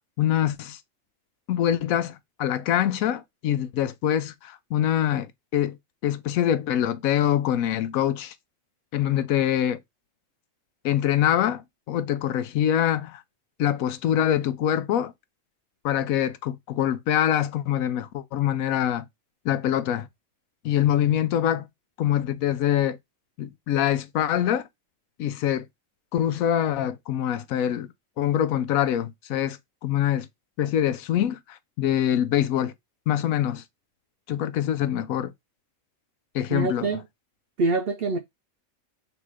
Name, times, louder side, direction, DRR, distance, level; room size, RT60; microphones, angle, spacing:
voice 1, 0.2-0.8 1.5-5.8 6.0-8.3 8.9-9.8 10.8-13.2 13.6-15.1 15.8-19.1 19.4-20.1 20.6-21.7 22.0-23.0 23.4-24.6 25.2-25.6 26.1-30.3 30.6-32.7 33.1-33.6 34.3-35.3 36.3-36.9, left 11 dB, 90° left, 1.0 m, -24 dB
voice 2, 36.5-37.0 37.6-38.2, right 3 dB, 65° right, 0.6 m, -25 dB
3.4 x 3.0 x 4.7 m
omnidirectional pair, 1.4 m